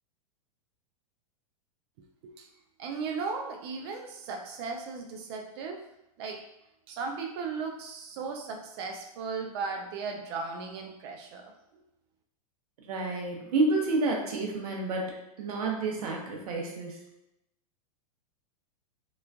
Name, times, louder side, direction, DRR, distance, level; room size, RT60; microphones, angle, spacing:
voice 1, 2.8-5.8 6.2-6.4 6.9-11.5, right 4 dB, 45° right, 2 dB, 0.4 m, -36 dB
voice 2, 12.8-17.0, right 3 dB, 75° right, -1 dB, 0.9 m, -30 dB
2.9 x 2.5 x 2.3 m, 0.88 s
supercardioid pair, 150°, 19 cm